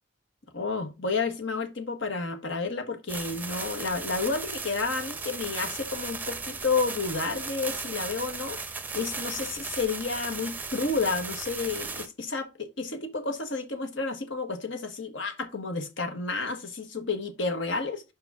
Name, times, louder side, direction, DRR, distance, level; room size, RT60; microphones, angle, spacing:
voice 1, 0.5-8.6 8.9-18.0, left 4 dB, 65° left, 1.3 m, -31 dB
sound 1, 3.1-12.1, right 4 dB, 10° right, 0.7 m, -36 dB
5.5 x 4.9 x 5.9 m
head